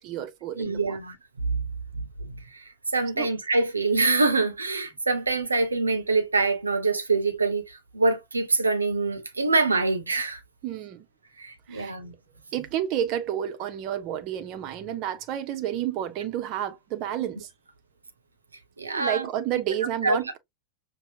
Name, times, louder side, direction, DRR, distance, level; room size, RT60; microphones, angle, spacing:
voice 1, 0.0-1.0 3.2-3.3 10.6-11.0 11.7-11.9 12.5-17.5 18.8-20.4, right 11 dB, 40° right, 0.6 m, -30 dB
voice 2, 0.6-10.4 11.4-12.1 18.8-19.3 20.0-20.2, right 3 dB, 80° right, 0.7 m, -25 dB
5.5 x 2.0 x 2.6 m
figure-of-eight pair, 90°, 0 cm